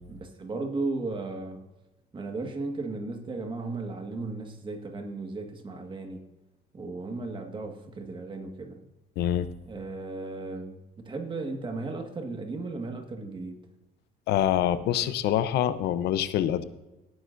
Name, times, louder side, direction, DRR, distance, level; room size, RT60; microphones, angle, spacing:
voice 1, 0.1-1.6 2.1-6.2 6.7-8.8 9.7-13.6, right 3 dB, 30° right, 1.8 m, -35 dB
voice 2, 9.2-9.5 14.3-16.6, left 11 dB, 75° left, 0.8 m, -25 dB
17.5 x 9.7 x 2.7 m
cardioid pair, 110°, 17 cm